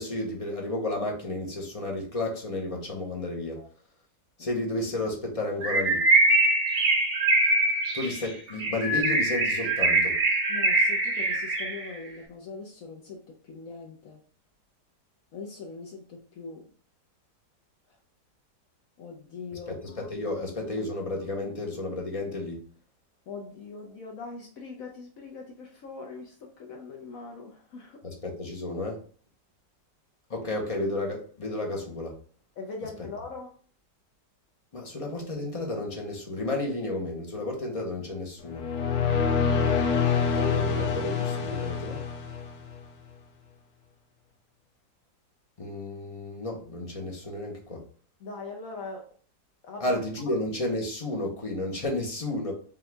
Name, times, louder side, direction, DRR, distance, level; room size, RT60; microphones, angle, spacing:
voice 1, 0.0-3.6 4.4-6.0 7.9-10.2 19.7-22.6 28.0-29.0 30.3-32.1 34.7-38.6 40.3-42.0 45.6-47.8 49.8-52.5, left 2 dB, 35° left, 0 dB, 0.5 m, -32 dB
Bird, 5.6-11.9, right 2 dB, 55° right, 0.5 m, -23 dB
voice 2, 10.5-14.2 15.3-16.7 19.0-19.8 23.3-28.0 32.6-33.6 48.2-49.1 49.6-50.0, left 4 dB, 60° left, 1 dB, 1.0 m, -41 dB
sound 1, 38.5-42.8, left 6 dB, 85° left, 1.3 m, -26 dB
5.3 x 2.4 x 3.3 m, 0.42 s
omnidirectional pair, 1.9 m